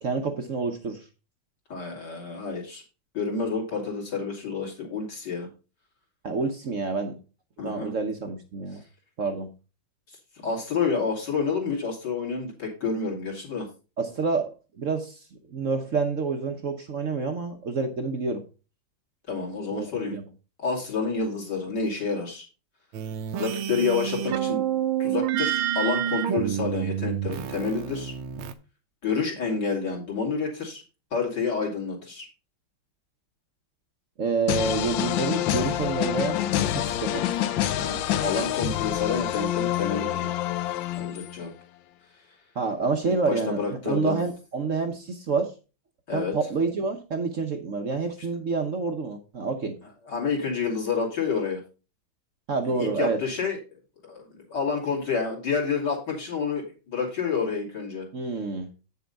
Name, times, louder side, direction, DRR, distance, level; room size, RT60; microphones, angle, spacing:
voice 1, 0.0-1.0 6.2-7.2 7.6-8.8 9.2-9.5 14.0-14.5 14.8-15.2 15.5-18.4 19.7-20.2 34.2-37.3 42.6-45.5 46.1-49.8 52.5-53.2 58.1-58.7, right 4 dB, 55° right, 5 dB, 0.9 m, -28 dB
voice 2, 1.7-2.8 3.1-5.5 7.6-7.9 10.1-13.7 19.3-20.2 20.6-22.4 23.4-24.6 25.0-28.1 29.0-30.8 31.1-32.3 37.8-40.3 41.0-41.5 43.3-44.2 46.1-46.3 50.0-51.6 52.6-53.6 54.0-58.0, left 5 dB, 55° left, -2 dB, 3.2 m, -29 dB
sound 1, 22.9-28.5, right 10 dB, 80° right, 1.6 m, -28 dB
sound 2, 34.5-41.4, left 12 dB, 75° left, 1.3 m, -27 dB
8.5 x 6.9 x 4.0 m, 0.32 s
omnidirectional pair, 2.3 m